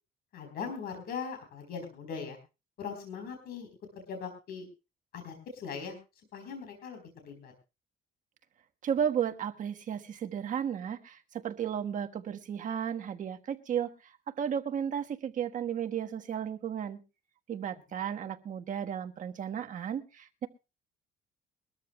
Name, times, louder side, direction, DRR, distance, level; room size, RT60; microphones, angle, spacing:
voice 1, 0.3-2.4 2.8-3.7 4.0-4.7 5.1-6.0 6.3-7.5, left 6 dB, 65° left, 5 dB, 4.2 m, -40 dB
voice 2, 8.8-13.9 14.3-17.0 17.5-20.5, right 8 dB, 50° right, 6 dB, 1.4 m, -34 dB
23.0 x 13.5 x 2.3 m, 0.29 s
cardioid pair, 110°, 17 cm